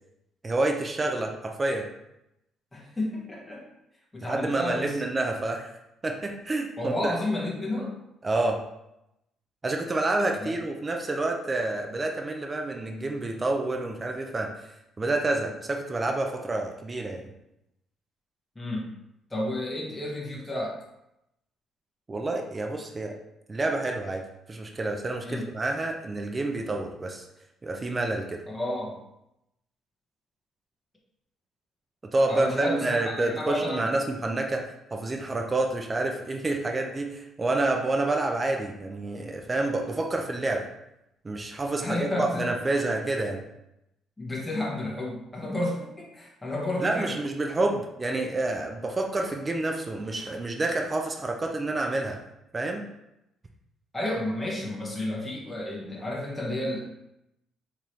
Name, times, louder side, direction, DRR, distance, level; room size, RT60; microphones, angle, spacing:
voice 1, 0.4-1.9 4.2-5.7 6.0-7.2 8.2-8.6 9.6-14.7 15.0-17.3 22.1-23.2 23.5-27.3 27.6-28.4 32.1-40.7 41.2-43.4 46.8-52.2 52.5-52.8, right 2 dB, 25° right, 2 dB, 0.5 m, -28 dB
voice 2, 2.7-3.6 4.1-5.0 6.8-8.0 10.4-10.5 18.6-18.9 19.3-20.8 25.2-25.5 28.5-29.0 32.3-33.8 41.8-42.5 44.2-47.2 53.9-56.8, left 1 dB, 10° left, -4 dB, 0.9 m, -31 dB
3.7 x 2.9 x 3.1 m, 0.85 s
cardioid pair, 90°, 0 cm